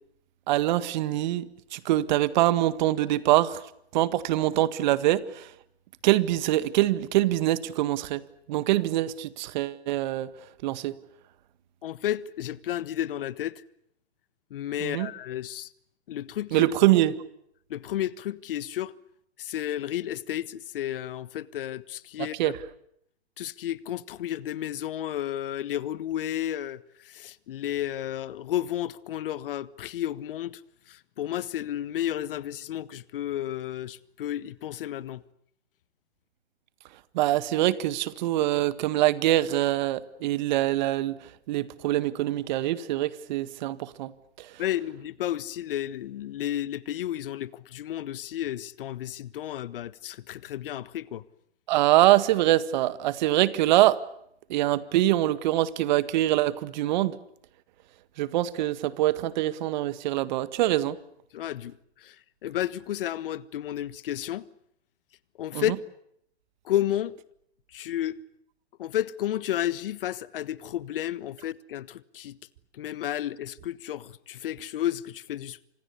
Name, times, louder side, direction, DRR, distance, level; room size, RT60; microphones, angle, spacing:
voice 1, 0.5-3.6 3.9-5.5 6.0-8.2 8.5-10.3 10.6-11.0 14.8-15.1 16.5-17.2 22.2-22.6 37.1-41.2 41.5-44.1 44.4-44.6 51.7-54.0 54.5-57.2 58.2-61.0 65.5-65.7, right 15 dB, 45° right, 1.8 m, -24 dB
voice 2, 11.8-13.6 14.5-15.7 16.1-16.6 17.7-18.9 19.4-22.5 23.4-30.6 30.9-35.2 44.6-51.2 61.3-62.2 62.4-64.5 65.4-65.7 66.6-67.2 67.7-68.2 68.8-72.4 72.7-75.7, left 12 dB, 55° left, 1.4 m, -32 dB
29.5 x 26.5 x 7.0 m
hypercardioid pair, 135°, 33 cm